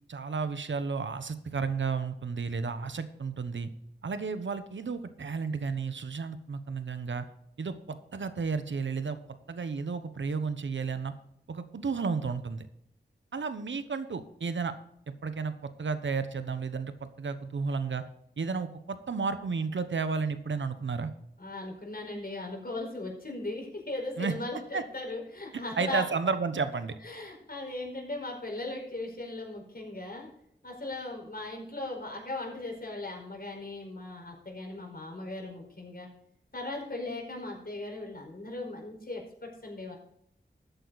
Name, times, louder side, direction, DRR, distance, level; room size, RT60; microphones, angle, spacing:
voice 1, 0.1-3.7 4.0-7.3 7.6-9.2 9.5-11.1 11.5-12.7 13.3-14.7 15.2-18.0 18.4-21.1 24.2-24.3 24.7-24.8 25.8-26.9, right 5 dB, 85° right, 11 dB, 1.1 m, -32 dB
voice 2, 21.4-26.1 27.0-30.3 30.6-36.1 36.5-40.0, left 2 dB, 55° left, 0 dB, 4.9 m, -38 dB
13.5 x 9.2 x 4.1 m, 0.73 s
wide cardioid pair, 50°, 19 cm